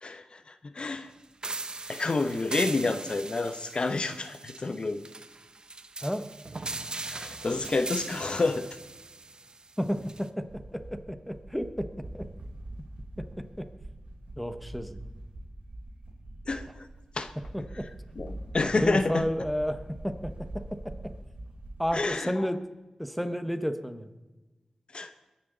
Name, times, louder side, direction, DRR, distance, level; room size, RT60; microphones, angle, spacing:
voice 1, 0.6-1.1 1.9-5.0 7.0-8.6 16.5-16.7 17.2-17.3 18.2-19.2 21.9-22.3 24.9-25.3, left 3 dB, 55° left, 9 dB, 0.8 m, -29 dB
sound 1, 1.4-10.3, right 3 dB, 45° right, 0.9 m, -40 dB
voice 2, 9.8-10.5 10.7-12.3 13.2-13.7 14.4-15.0 17.5-17.9 18.6-21.1 21.8-22.6 23.0-24.1, equal, ahead, 9 dB, 1.1 m, -32 dB
sound 2, 10.4-22.0, right 1 dB, 70° right, 3.5 m, -44 dB
22.0 x 10.0 x 3.9 m, 1.1 s
cardioid pair, 60°, 2 cm